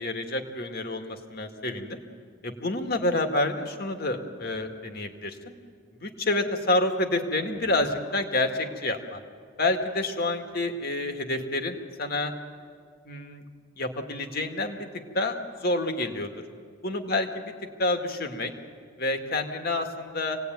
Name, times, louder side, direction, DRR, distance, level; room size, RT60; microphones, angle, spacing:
voice 1, 0.0-2.0 2.4-5.4 5.9-9.2 9.6-12.3 13.1-13.4 13.8-14.9 15.1-16.3 16.8-17.5 17.8-18.5 19.0-20.4, left 2 dB, 45° left, 5 dB, 2.0 m, -28 dB
26.5 x 19.0 x 9.4 m, 2.1 s
head